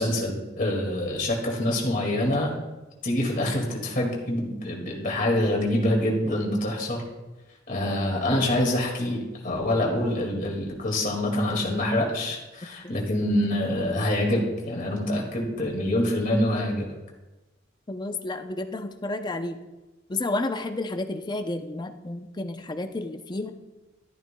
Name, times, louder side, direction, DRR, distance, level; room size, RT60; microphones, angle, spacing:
voice 1, 0.0-2.5 3.0-7.0 7.7-16.9, left 1 dB, 45° left, 0 dB, 2.1 m, -26 dB
voice 2, 17.9-19.6 20.1-23.5, left 2 dB, 25° left, 7 dB, 0.5 m, -31 dB
12.0 x 11.0 x 2.2 m, 1.1 s
head